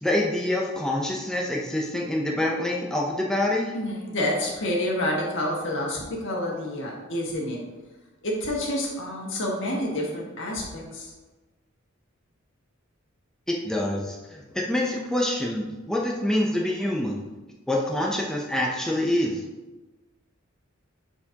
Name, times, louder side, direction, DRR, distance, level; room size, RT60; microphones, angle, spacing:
voice 1, 0.0-3.7 13.5-17.3 17.7-19.4, left 1 dB, 5° left, -2 dB, 0.6 m, -26 dB
voice 2, 3.7-7.6 8.2-11.1, left 1 dB, 65° left, -2 dB, 1.6 m, -28 dB
10.0 x 4.5 x 2.8 m, 1.2 s
head